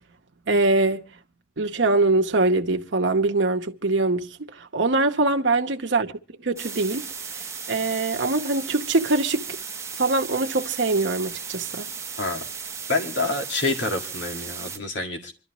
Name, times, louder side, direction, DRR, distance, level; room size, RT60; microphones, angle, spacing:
voice 1, 0.5-1.0 1.6-6.1 6.4-7.0 7.7-9.5 10.0-11.9, right 2 dB, 80° right, 0.9 m, -23 dB
sound 1, 6.6-14.8, right 6 dB, 15° right, 0.8 m, -35 dB
voice 2, 12.9-15.3, left 2 dB, 80° left, 2.0 m, -27 dB
27.0 x 12.5 x 3.0 m
head